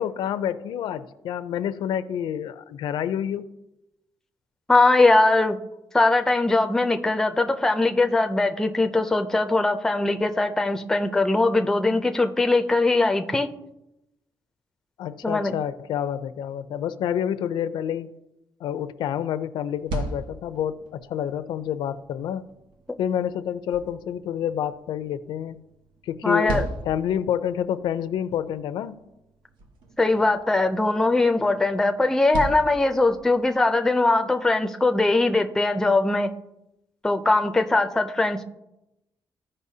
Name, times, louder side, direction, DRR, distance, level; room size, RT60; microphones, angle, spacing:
voice 1, 0.0-3.5 15.0-18.2 18.6-22.4 23.0-25.6 26.0-29.0, left 9 dB, 80° left, 12 dB, 0.5 m, -28 dB
voice 2, 4.7-5.6 5.9-13.5 15.2-15.5 26.2-26.6 30.0-36.3 37.0-38.4, left 2 dB, 5° left, 6 dB, 0.4 m, -21 dB
sound 1, 19.6-33.6, right 2 dB, 85° right, 1.1 m, -39 dB
15.5 x 5.4 x 2.8 m, 0.90 s
cardioid pair, 180°, 8 cm